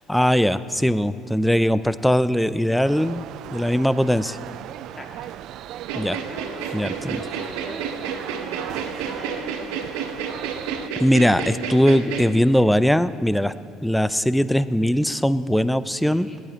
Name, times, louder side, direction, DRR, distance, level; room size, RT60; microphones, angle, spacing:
voice 1, 0.1-3.2 3.5-4.4 5.9-6.2 6.7-7.2 11.0-13.5 13.8-16.3, equal, 5° left, 14 dB, 0.5 m, -20 dB
sound 1, 2.8-10.9, right 12 dB, 65° right, 0.4 m, -37 dB
voice 2, 4.9-5.3 5.6-10.1 16.0-16.4, left 1 dB, 25° left, 2 dB, 2.1 m, -43 dB
sound 2, 5.8-12.2, right 6 dB, 85° right, 1.2 m, -30 dB
18.0 x 11.0 x 4.5 m, 2.4 s
supercardioid pair, 85°, 0 cm